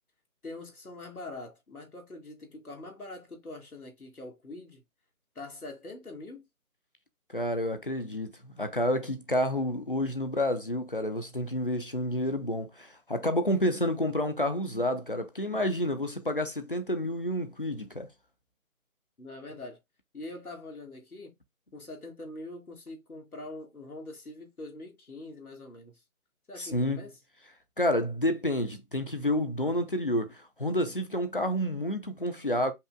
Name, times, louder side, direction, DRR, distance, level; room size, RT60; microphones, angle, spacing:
voice 1, 0.4-4.8 5.4-6.5 19.2-19.8 20.1-21.3 21.7-26.0 26.5-27.1, left 2 dB, 90° left, 1.8 m, -43 dB
voice 2, 7.3-18.1 26.6-27.1 27.8-32.7, left 1 dB, 40° left, 0.5 m, -29 dB
5.4 x 2.2 x 3.6 m
figure-of-eight pair, 160°, 43 cm